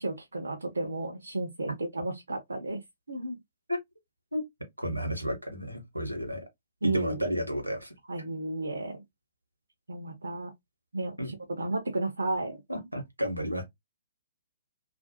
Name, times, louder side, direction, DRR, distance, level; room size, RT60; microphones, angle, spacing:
voice 1, 0.0-2.8 3.1-3.4 6.8-7.3 8.1-9.0 9.9-10.5 10.9-12.6, right 2 dB, 70° right, 0.5 m, -33 dB
voice 2, 4.8-6.4 6.8-7.9 11.2-11.3 12.7-13.6, equal, 90° right, 0.9 m, -32 dB
2.4 x 2.0 x 2.7 m
figure-of-eight pair, 120°, 0 cm